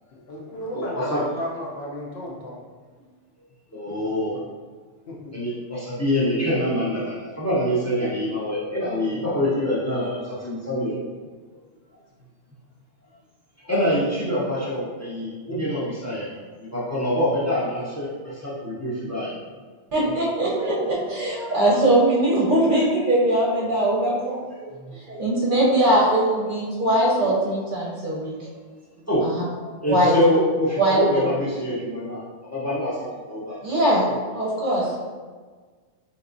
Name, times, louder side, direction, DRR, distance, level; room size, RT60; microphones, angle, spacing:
voice 1, 0.1-2.6 3.9-4.0 4.3-4.4 5.1-5.2 9.1-9.3 10.6-10.8, left 1 dB, 65° left, -3 dB, 0.8 m, -34 dB
voice 2, 0.7-1.2 3.7-4.4 5.3-11.0 13.7-16.4 16.7-19.4 29.1-29.2 29.5-33.6, equal, 20° left, -8 dB, 0.6 m, -25 dB
voice 3, 19.9-24.8 25.1-28.5 29.2-29.4 29.9-30.2 30.8-31.3 33.6-35.0, right 1 dB, 50° right, -5 dB, 0.8 m, -21 dB
3.3 x 2.9 x 2.5 m, 1.5 s
omnidirectional pair, 1.2 m